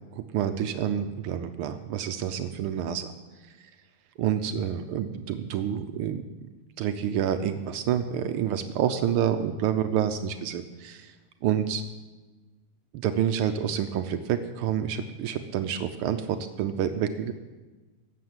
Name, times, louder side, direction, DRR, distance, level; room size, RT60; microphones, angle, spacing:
voice 1, 0.1-3.1 4.2-6.2 6.8-11.1 11.4-11.8 12.9-17.3, right 9 dB, 85° right, 8 dB, 1.2 m, -28 dB
17.5 x 7.4 x 7.9 m, 1.2 s
omnidirectional pair, 3.3 m